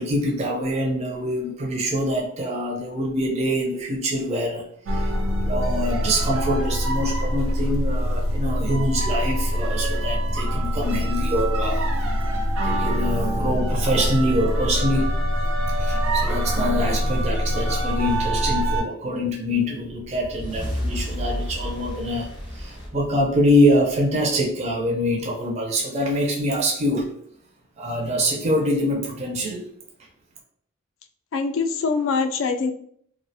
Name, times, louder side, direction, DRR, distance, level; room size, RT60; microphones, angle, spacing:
voice 1, 0.0-5.2 5.4-11.9 12.6-15.2 15.7-27.1 27.8-29.7, equal, 30° right, 0 dB, 0.4 m, -24 dB
sound 1, 4.9-18.8, equal, 85° right, 0.5 m, -24 dB
sound 2, 19.9-24.4, equal, 25° left, 0.6 m, -32 dB
voice 2, 31.3-32.7, left 4 dB, 70° left, 7 dB, 0.3 m, -23 dB
2.3 x 2.1 x 2.7 m, 0.65 s
head